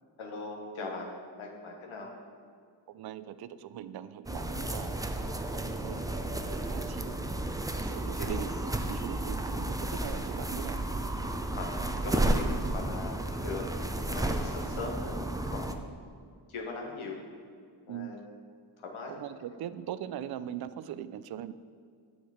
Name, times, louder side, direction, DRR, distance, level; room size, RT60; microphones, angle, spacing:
voice 1, 0.2-1.1 1.4-2.1 8.1-8.4 11.6-12.4 12.7-13.7 13.9-15.2 15.5-15.9 16.5-17.2 17.9-18.3 18.8-19.1, left 3 dB, 75° left, 0 dB, 1.2 m, -40 dB
voice 2, 2.9-7.2 7.7-8.5 8.9-10.8 17.9-18.2 19.1-21.5, right 10 dB, 50° right, 15 dB, 0.5 m, -41 dB
sound 1, 4.3-15.7, right 1 dB, 5° right, 0.6 m, -32 dB
7.1 x 5.3 x 4.9 m, 2.1 s
cardioid pair, 45°, 49 cm